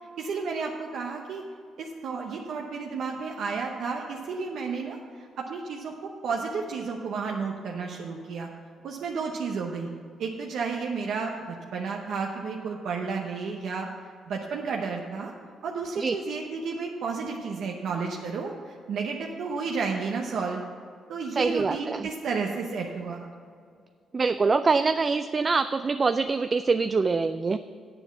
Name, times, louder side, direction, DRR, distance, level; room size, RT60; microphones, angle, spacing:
voice 1, 0.2-1.4 1.8-5.0 5.4-5.9 6.2-8.5 8.8-9.9 10.2-13.9 14.3-15.3 15.6-20.6 21.1-23.3, right 5 dB, 70° right, 0 dB, 0.8 m, -32 dB
voice 2, 21.4-22.1 24.1-27.6, right 4 dB, 35° right, 10 dB, 0.3 m, -24 dB
8.1 x 6.9 x 7.2 m, 2.2 s
cardioid pair, 90°, 0 cm